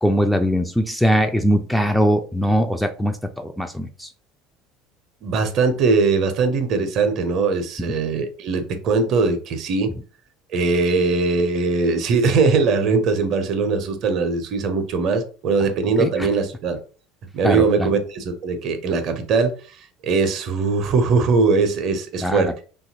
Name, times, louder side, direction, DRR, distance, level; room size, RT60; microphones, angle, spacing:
voice 1, 0.0-4.1 16.0-16.3 17.4-17.9 22.2-22.4, equal, ahead, 6 dB, 0.3 m, -21 dB
voice 2, 5.2-9.9 10.5-16.8 17.3-19.8 20.0-22.5, right 4 dB, 50° right, 8 dB, 0.5 m, -20 dB
2.7 x 2.3 x 2.7 m, 0.38 s
figure-of-eight pair, 65°, 0 cm